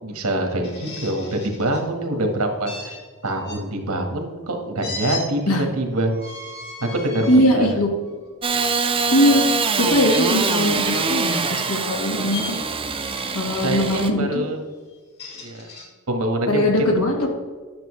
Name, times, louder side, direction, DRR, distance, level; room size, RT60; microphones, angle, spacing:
voice 1, 0.0-3.0 3.2-6.1 6.8-7.8 13.6-14.6 15.4-15.6 16.1-16.9, right 1 dB, 85° right, 3 dB, 1.6 m, -25 dB
sound 1, 0.6-1.8 2.7-3.6 4.8-5.2 6.1-7.4 8.0-8.3 10.0-10.2 11.1-11.6 12.3-12.6 13.0-13.5 14.9-15.9, left 3 dB, 50° left, 2.5 m, -36 dB
voice 2, 7.3-7.9 9.1-9.4 9.8-12.6 13.3-14.4 16.5-17.3, left 1 dB, 85° left, 1 dB, 1.7 m, -20 dB
Engine starting / Sawing, 8.4-14.1, right 4 dB, 25° right, 0.6 m, -24 dB
10.5 x 6.6 x 3.3 m, 1.5 s
head